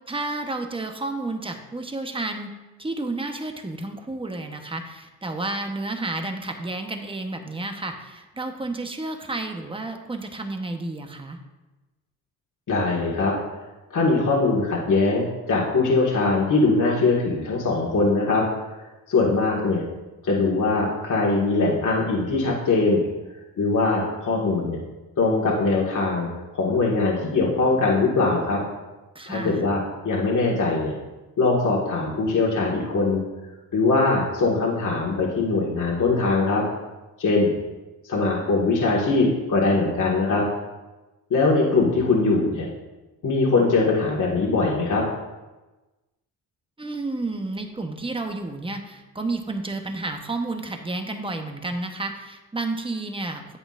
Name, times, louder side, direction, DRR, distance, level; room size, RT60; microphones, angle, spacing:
voice 1, 0.1-2.5 2.8-11.4 29.1-29.6 46.8-53.6, right 2 dB, 15° right, 5 dB, 1.0 m, -31 dB
voice 2, 12.7-13.3 13.9-18.4 19.1-19.8 20.2-23.0 23.6-24.8 25.2-28.6 29.3-30.9 31.4-33.2 33.7-36.6 37.2-37.5 38.0-40.4 41.3-42.7 43.2-45.0, left 3 dB, 50° left, -4 dB, 1.9 m, -21 dB
9.9 x 8.0 x 2.6 m, 1.1 s
cardioid pair, 75°, 39 cm